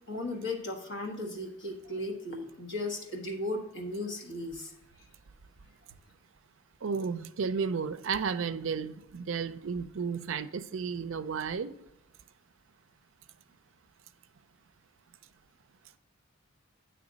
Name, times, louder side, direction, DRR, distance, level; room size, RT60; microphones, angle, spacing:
voice 1, 0.1-4.7, left 2 dB, 55° left, 1.3 m, -36 dB
voice 2, 6.8-11.7, right 5 dB, 65° right, 0.4 m, -33 dB
8.8 x 3.4 x 5.1 m
head